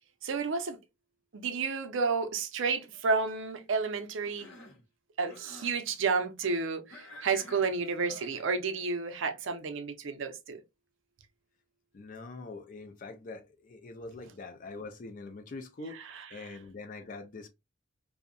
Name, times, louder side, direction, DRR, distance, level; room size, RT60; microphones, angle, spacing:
voice 1, 0.2-0.8 1.3-4.5 5.2-10.6 15.9-16.6, right 4 dB, 65° right, 0.5 m, -31 dB
Cough, 4.2-4.8 5.2-5.8 6.9-8.5, left 2 dB, 70° left, 0.8 m, -50 dB
voice 2, 11.9-16.0 16.3-17.5, left 3 dB, 40° left, 0.4 m, -44 dB
2.6 x 2.1 x 2.5 m
head